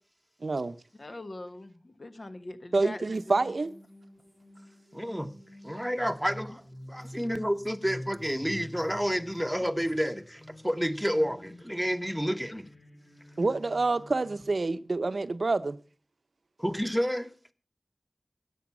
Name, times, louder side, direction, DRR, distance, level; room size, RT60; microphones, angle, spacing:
voice 1, 0.4-0.8 2.7-3.7 13.4-15.8, right 3 dB, 85° right, 0.6 m, -27 dB
voice 2, 1.0-3.4, left 2 dB, 65° left, 1.3 m, -42 dB
sound 1, 3.1-14.4, left 1 dB, 25° left, 3.4 m, -48 dB
voice 3, 4.9-5.3 5.6-6.6 6.9-12.7 16.6-17.3, equal, ahead, 1.0 m, -30 dB
10.5 x 8.4 x 7.1 m
wide cardioid pair, 60°, 0 cm